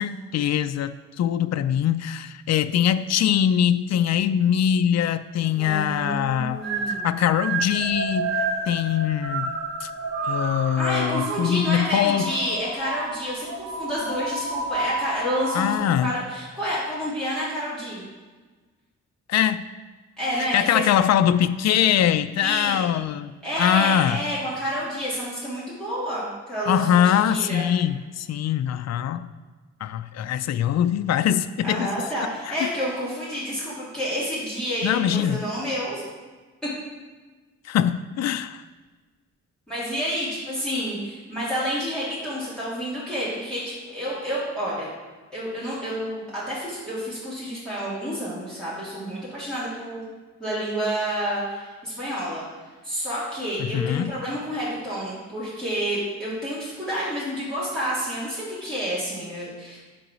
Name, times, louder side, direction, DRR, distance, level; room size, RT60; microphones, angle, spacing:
voice 1, 0.0-6.6 7.0-9.5 9.8-9.9 10.2-12.3 15.5-16.1 19.3-19.6 20.4-23.3 23.6-24.2 26.7-29.3 29.8-31.9 32.5-32.6 34.8-35.4 37.6-38.6 53.6-54.1, left 10 dB, 65° left, 11 dB, 0.4 m, -22 dB
voice 2, 5.6-7.2 10.7-15.8 16.0-18.0 20.2-20.9 22.4-22.8 23.4-27.6 31.6-36.0 36.6-36.7 39.7-44.9 45.3-50.0 50.4-52.4 52.8-59.8, equal, ahead, -11 dB, 3.2 m, -29 dB
sound 1, 5.6-15.7, right 3 dB, 70° right, 2.2 m, -30 dB
11.0 x 4.0 x 6.2 m, 1.3 s
wide cardioid pair, 120°, 29 cm